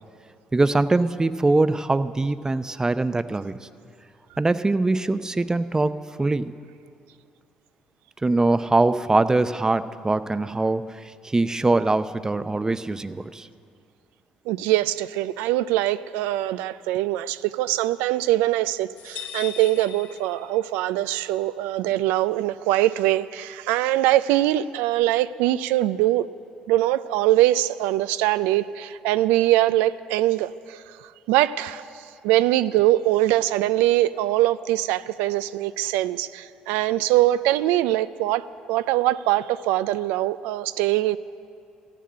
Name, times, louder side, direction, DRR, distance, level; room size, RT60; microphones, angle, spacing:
voice 1, 0.5-3.6 4.4-6.5 8.2-13.5, right 2 dB, 20° right, 13 dB, 0.6 m, -22 dB
voice 2, 14.5-26.2 26.7-30.8 31.3-31.8 32.2-41.2, right 15 dB, 80° right, 14 dB, 0.3 m, -22 dB
sound 1, 19.0-20.9, left 9 dB, 65° left, 1.5 m, -39 dB
14.5 x 7.6 x 9.6 m, 2.5 s
hypercardioid pair, 60°, 3 cm